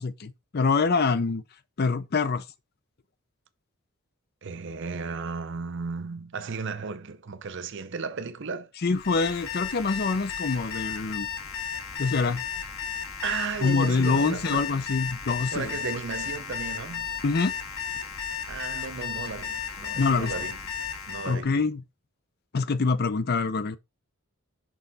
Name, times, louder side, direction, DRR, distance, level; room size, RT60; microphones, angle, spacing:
voice 1, 0.0-1.4 1.8-2.4 8.8-11.3 12.0-12.4 13.6-15.7 17.2-17.5 20.0-20.3 21.2-21.8 22.5-23.8, left 4 dB, 45° left, 0.5 m, -25 dB
voice 2, 4.4-8.7 13.2-14.7 15.5-17.2 18.5-20.6 21.1-21.5, right 5 dB, 55° right, 0.6 m, -34 dB
Alarm, 8.9-21.4, left 7 dB, 65° left, 1.5 m, -34 dB
6.2 x 3.8 x 4.0 m
head